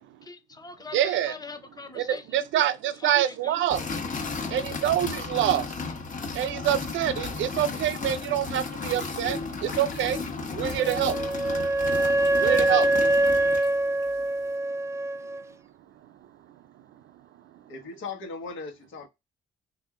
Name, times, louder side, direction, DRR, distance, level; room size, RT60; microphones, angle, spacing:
voice 1, 0.2-2.7 2.9-3.6, left 4 dB, 20° left, 0.6 m, -43 dB
voice 2, 0.9-1.3 1.9-3.8 4.5-5.7 6.3-10.2 10.5-11.2 12.4-12.9, right 11 dB, 75° right, 0.5 m, -26 dB
sound 1, 3.7-13.7, left 4 dB, 40° left, 1.2 m, -34 dB
sound 2, 8.4-14.6, left 5 dB, 60° left, 1.2 m, -51 dB
Wind instrument woodwind instrument, 10.8-15.4, right 1 dB, 15° right, 0.3 m, -24 dB
voice 3, 17.7-19.1, left 4 dB, 80° left, 1.3 m, -38 dB
3.4 x 2.7 x 3.6 m
cardioid pair, 90°, 20 cm